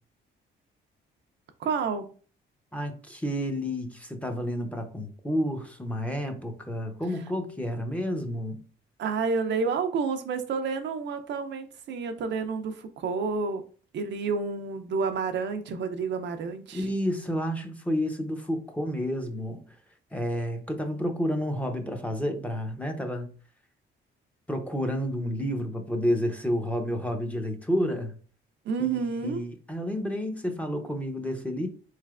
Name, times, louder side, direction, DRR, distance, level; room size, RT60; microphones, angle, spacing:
voice 1, 1.6-2.1 9.0-13.6 13.9-16.9 28.6-29.4, right 5 dB, 65° right, 0.5 m, -29 dB
voice 2, 2.7-8.6 16.7-19.6 20.1-23.3 24.5-28.1 28.8-31.7, equal, 5° left, 0.7 m, -30 dB
3.8 x 3.2 x 2.4 m
cardioid pair, 90°, 20 cm